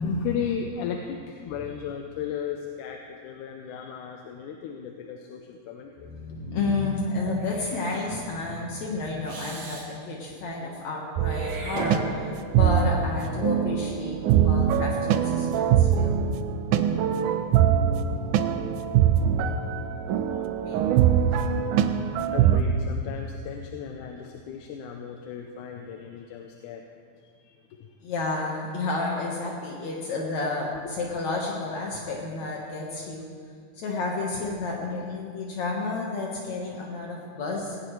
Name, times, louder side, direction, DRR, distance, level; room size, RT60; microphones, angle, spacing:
voice 1, 0.0-6.1 19.1-19.2 20.2-20.3 21.3-21.4 22.3-26.8 27.2-27.9, left 8 dB, 85° left, 3 dB, 2.3 m, -35 dB
voice 2, 6.0-16.2 20.6-20.9 28.0-33.3 33.8-37.8, left 3 dB, 65° left, -2 dB, 2.6 m, -31 dB
Meow / Hiss, 7.4-8.0 9.3-9.9 11.2-12.5, right 1 dB, 60° right, 4.0 m, -39 dB
sound 1, 11.2-22.6, right 9 dB, 85° right, 2.1 m, -23 dB
18.5 x 17.0 x 3.2 m, 2.2 s
omnidirectional pair, 3.5 m